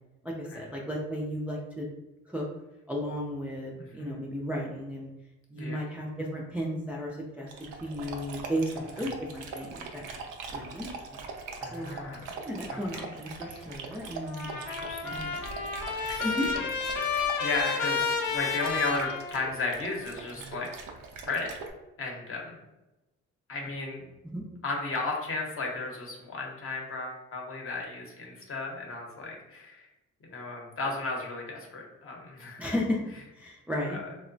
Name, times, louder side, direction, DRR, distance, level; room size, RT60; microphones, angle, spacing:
voice 1, 0.2-1.9 2.3-2.4 2.9-5.1 5.5-7.5 7.8-10.1 10.5-11.2 11.7-11.9 12.4-14.5 15.0-15.4 16.2-16.5 20.4-20.5 24.2-24.4 32.6-33.0 33.4-34.0, equal, 5° right, -3 dB, 0.3 m, -34 dB
voice 2, 3.7-4.2 5.5-5.8 11.6-12.2 12.7-13.0 13.4-13.6 14.5-15.5 16.0-16.5 17.0-20.7 21.2-21.5 22.0-22.6 23.5-24.0 24.6-29.9 30.2-32.6 33.9-34.0, left 3 dB, 45° left, 0 dB, 0.8 m, -35 dB
Dog, 7.5-21.7, right 4 dB, 85° right, 0.5 m, -42 dB
Trumpet, 14.3-19.9, left 5 dB, 90° left, 0.5 m, -31 dB
2.8 x 2.1 x 2.6 m, 0.99 s
cardioid pair, 90°, 30 cm